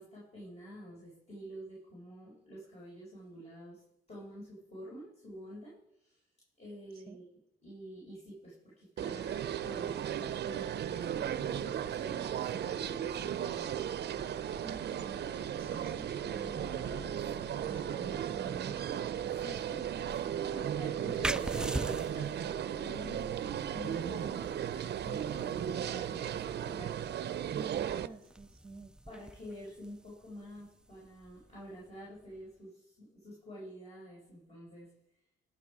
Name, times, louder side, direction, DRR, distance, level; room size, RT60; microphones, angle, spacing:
voice 1, 0.0-6.2 6.6-7.3 7.6-13.7 16.8-17.6 19.2-27.7 29.1-34.9, equal, 35° left, -6 dB, 5.1 m, -48 dB
sound 1, 9.0-28.1, right 10 dB, 55° right, 0.6 m, -36 dB
sound 2, 9.4-25.8, left 3 dB, 75° left, 1.8 m, -53 dB
voice 2, 14.6-15.2 15.6-16.8 17.6-19.4 21.1-21.2 27.5-29.0, right 3 dB, 20° right, 10 dB, 0.9 m, -49 dB
sound 3, 21.2-32.5, right 1 dB, 5° right, 0.3 m, -44 dB
17.0 x 6.1 x 4.9 m, 0.75 s
cardioid pair, 90°, 20 cm